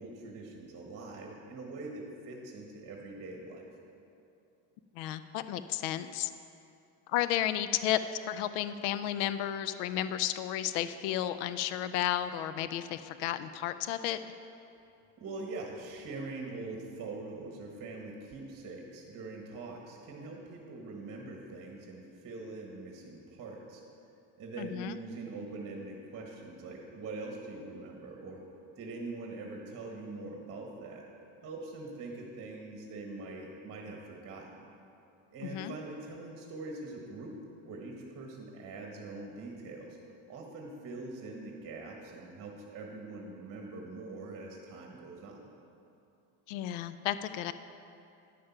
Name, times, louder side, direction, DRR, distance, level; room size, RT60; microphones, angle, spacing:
voice 1, 0.0-3.7 15.2-23.8 24.4-28.4 28.8-31.0 31.4-34.6 35.3-37.4 37.6-40.0 40.3-45.4, right 3 dB, 40° right, 1 dB, 1.4 m, -43 dB
voice 2, 5.0-6.3 7.1-8.0 8.3-14.2 24.6-25.0 35.4-35.7 46.5-47.5, left 12 dB, 85° left, 12 dB, 0.5 m, -32 dB
10.0 x 6.6 x 5.7 m, 2.7 s
supercardioid pair, 110°, 35 cm